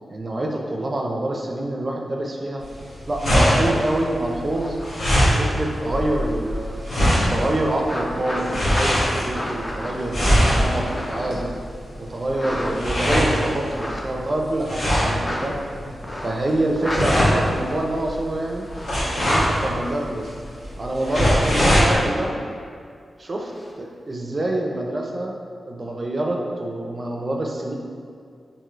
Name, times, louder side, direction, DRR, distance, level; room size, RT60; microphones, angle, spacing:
voice 1, 0.1-2.6 3.1-4.8 5.3-6.8 7.3-10.2 10.6-11.5 12.0-15.6 16.2-18.7 19.1-20.3 20.8-22.5 23.2-23.5 23.8-25.3 25.7-27.7, right 1 dB, 45° right, 0 dB, 0.4 m, -26 dB
sound 1, 2.6-22.0, equal, 70° left, 0.9 m, -23 dB
sound 2, 4.3-6.8 7.2-11.5 12.3-13.1 13.6-14.0 15.2-15.5 16.0-16.5 16.7-17.0 17.8-18.9 23.4-23.7, left 1 dB, 20° left, 0.4 m, -33 dB
3.0 x 2.7 x 2.4 m, 2.2 s
cardioid pair, 55°, 0 cm